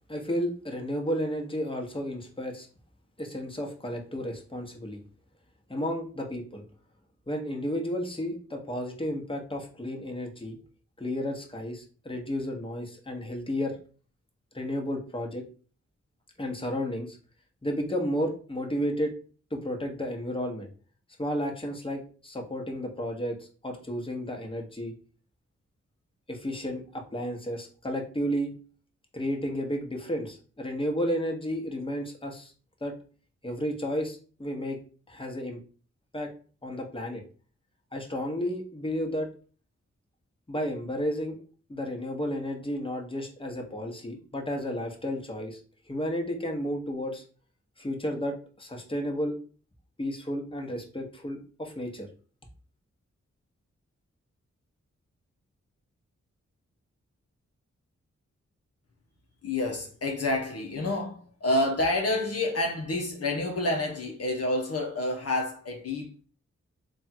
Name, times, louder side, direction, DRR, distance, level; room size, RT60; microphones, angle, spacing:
voice 1, 0.1-2.7 3.2-5.0 5.7-6.6 7.3-10.6 11.0-13.8 14.5-15.4 16.4-17.2 17.6-19.1 19.5-20.7 21.2-25.0 26.3-28.5 29.1-32.5 32.8-32.9 33.4-34.8 35.1-35.6 36.1-36.3 36.6-37.2 37.9-39.3 40.5-41.4 41.7-45.6 45.9-47.2 47.8-49.4 50.0-52.1, equal, 20° left, 1.2 m, -32 dB
voice 2, 59.4-66.2, left 1 dB, 55° left, 0.9 m, -28 dB
3.4 x 2.4 x 4.4 m
cardioid pair, 40°, 29 cm